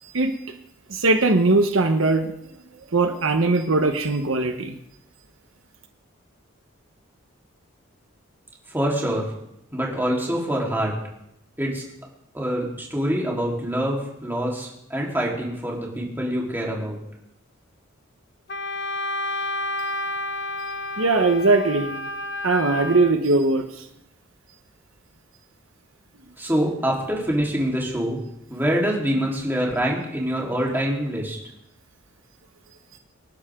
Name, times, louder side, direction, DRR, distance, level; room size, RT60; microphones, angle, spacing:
voice 1, 0.0-0.3 0.9-2.3 2.9-4.7 21.0-21.9 22.4-23.8, right 3 dB, 70° right, 6 dB, 1.2 m, -20 dB
voice 2, 8.7-9.3 9.7-10.9 11.6-11.8 12.3-17.0 26.4-28.2 28.5-31.4, equal, 10° right, -3 dB, 3.9 m, -25 dB
Wind instrument woodwind instrument, 18.5-23.1, left 1 dB, 55° left, 1.0 m, -30 dB
27.0 x 11.5 x 3.8 m, 0.81 s
head